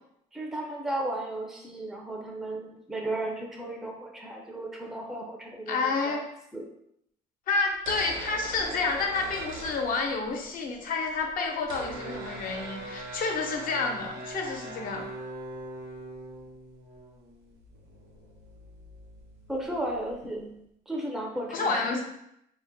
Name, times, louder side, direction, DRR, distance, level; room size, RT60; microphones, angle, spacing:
voice 1, 0.3-6.2 6.5-6.7 19.5-20.4 20.9-22.0, right 1 dB, ahead, -1 dB, 0.4 m, -34 dB
voice 2, 5.7-6.3 7.5-15.1 20.2-20.5 21.5-22.0, left 4 dB, 55° left, 2 dB, 0.6 m, -29 dB
sound 1, 7.7-10.5 10.7-10.8 11.0-20.4, right 2 dB, 75° right, 0.8 m, -42 dB
2.2 x 2.1 x 3.8 m, 0.77 s
cardioid pair, 110°, 17 cm